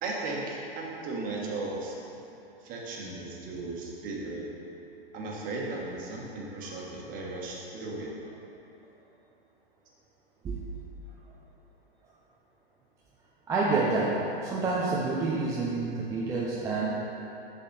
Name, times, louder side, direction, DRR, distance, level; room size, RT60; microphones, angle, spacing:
voice 1, 0.0-1.9 2.6-4.4 5.1-8.1, right 2 dB, 25° right, -3 dB, 1.3 m, -36 dB
voice 2, 13.5-16.9, right 3 dB, 10° right, -5 dB, 0.4 m, -28 dB
7.2 x 6.4 x 4.1 m, 2.8 s
hypercardioid pair, 130°, 30 cm